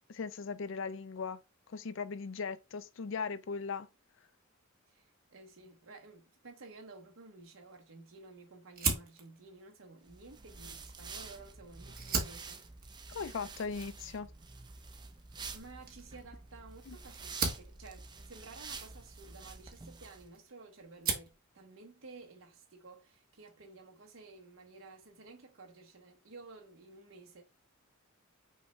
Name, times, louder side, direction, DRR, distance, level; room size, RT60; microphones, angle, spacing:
voice 1, 0.1-1.4 1.7-3.9 13.1-14.3 16.9-17.0, left 5 dB, 65° left, 0.5 m, -38 dB
voice 2, 4.9-12.6 15.5-27.4, right 3 dB, 70° right, 0.9 m, -53 dB
Fire, 8.7-11.4 11.8-20.5 20.8-21.4, right 5 dB, 45° right, 1.1 m, -39 dB
sound 1, 10.1-20.3, right 4 dB, 20° right, 0.5 m, -48 dB
5.6 x 2.2 x 4.1 m
head